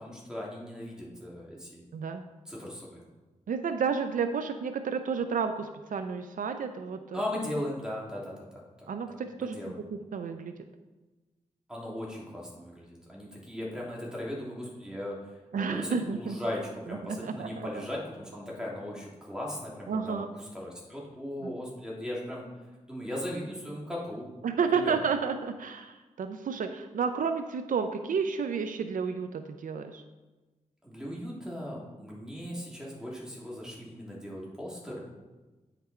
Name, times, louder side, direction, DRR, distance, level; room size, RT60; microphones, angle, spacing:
voice 1, 0.0-1.8 2.4-3.0 7.1-8.9 9.4-9.8 11.7-22.5 22.9-24.3 24.7-24.9 30.8-35.0, left 1 dB, 5° right, -4 dB, 3.0 m, -38 dB
voice 2, 1.9-2.2 3.5-7.2 8.9-9.6 9.9-10.5 15.5-16.4 17.0-17.7 19.9-20.3 24.4-30.0, right 6 dB, 90° right, 8 dB, 0.5 m, -31 dB
9.4 x 5.9 x 4.4 m, 1.2 s
wide cardioid pair, 75°, 13 cm